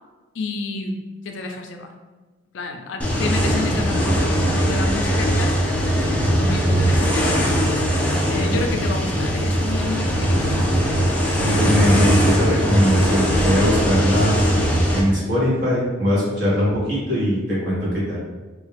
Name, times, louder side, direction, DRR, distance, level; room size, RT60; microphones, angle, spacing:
voice 1, 0.3-1.0 1.2-1.9 2.5-5.8 6.3-7.4 8.2-11.0 14.0-14.8, left 3 dB, 75° left, 4 dB, 0.4 m, -30 dB
sound 1, 3.0-15.0, equal, 5° left, 0.4 m, -20 dB
voice 2, 11.4-14.4 14.9-18.2, equal, 55° right, -8 dB, 1.4 m, -20 dB
3.1 x 2.3 x 3.3 m, 1.3 s
head